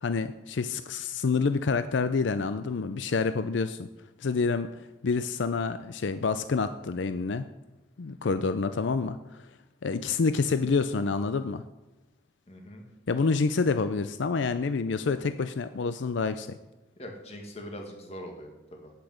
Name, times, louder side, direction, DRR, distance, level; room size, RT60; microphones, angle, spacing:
voice 1, 0.0-3.9 4.2-7.5 8.0-9.5 9.8-11.6 13.1-16.6, left 4 dB, 80° left, 11 dB, 0.5 m, -28 dB
voice 2, 12.5-12.9 17.0-18.9, equal, 35° left, 2 dB, 2.0 m, -42 dB
8.6 x 8.3 x 7.9 m, 1.1 s
head